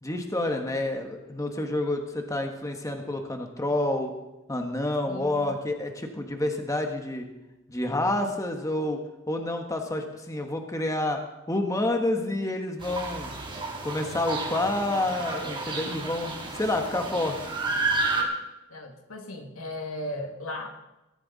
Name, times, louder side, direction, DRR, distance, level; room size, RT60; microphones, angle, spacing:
voice 1, 0.0-4.1 4.5-7.3 7.7-9.0 9.3-11.2 11.5-13.3 13.8-17.5, left 1 dB, 15° left, 3 dB, 1.5 m, -28 dB
voice 2, 5.1-5.6 18.7-20.7, left 1 dB, 80° left, 3 dB, 2.4 m, -37 dB
sound 1, 12.8-18.2, right 3 dB, 25° right, 4.3 m, -31 dB
20.5 x 14.0 x 4.2 m, 0.98 s
head